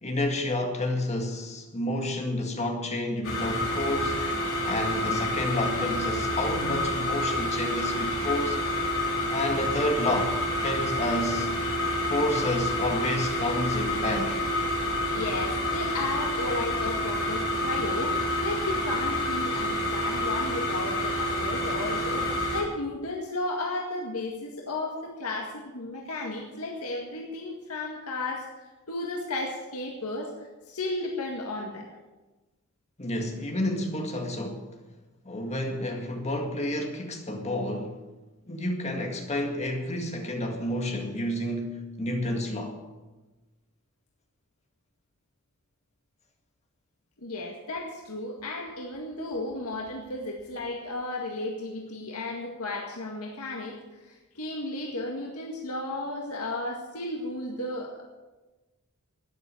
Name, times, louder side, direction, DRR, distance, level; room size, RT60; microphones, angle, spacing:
voice 1, 0.0-4.2 4.7-8.6 9.3-11.5 12.1-14.4 33.0-34.7 35.2-38.0 38.5-42.8, left 1 dB, 30° left, 2.0 m, -30 dB
sound 1, 3.2-22.6, left 1 dB, 65° left, 4.7 m, -28 dB
voice 2, 15.1-31.9 47.2-53.8 54.0-58.0, left 2 dB, 85° left, 2.0 m, -34 dB
13.0 x 9.7 x 8.5 m
head